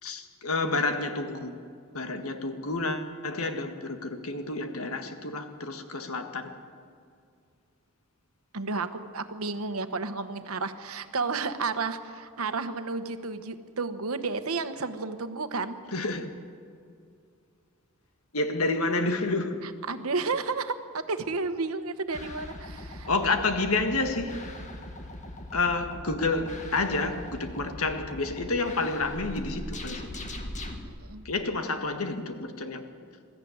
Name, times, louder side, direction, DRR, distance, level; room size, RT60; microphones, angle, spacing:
voice 1, 0.0-1.6 1.9-6.6 15.9-16.3 18.3-19.6 23.1-24.4 25.5-30.1 31.3-32.9, left 3 dB, 85° left, 7 dB, 1.7 m, -29 dB
voice 2, 8.5-15.8 19.8-23.1 30.9-31.2, right 4 dB, 90° right, 10 dB, 1.2 m, -32 dB
sound 1, 22.1-30.8, left 1 dB, 35° left, 1.9 m, -40 dB
21.5 x 14.0 x 9.5 m, 2.3 s
head